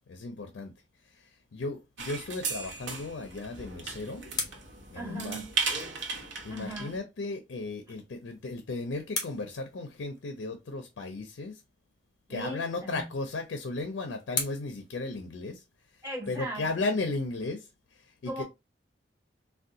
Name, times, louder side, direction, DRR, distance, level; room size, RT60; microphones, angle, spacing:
voice 1, 0.1-0.7 1.0-4.3 4.9-5.4 6.4-11.6 12.3-15.6 16.0-18.4, left 3 dB, 75° left, 0.5 m, -35 dB
sound 1, 2.0-7.0, right 5 dB, 75° right, 0.7 m, -36 dB
sound 2, 3.4-5.9 8.1-10.5 12.7-15.9, left 4 dB, 20° left, 0.8 m, -41 dB
voice 2, 4.9-5.5 6.5-7.0 12.3-13.1 16.0-16.7 18.3-18.4, right 1 dB, 25° right, 2.0 m, -38 dB
3.4 x 2.2 x 2.7 m
head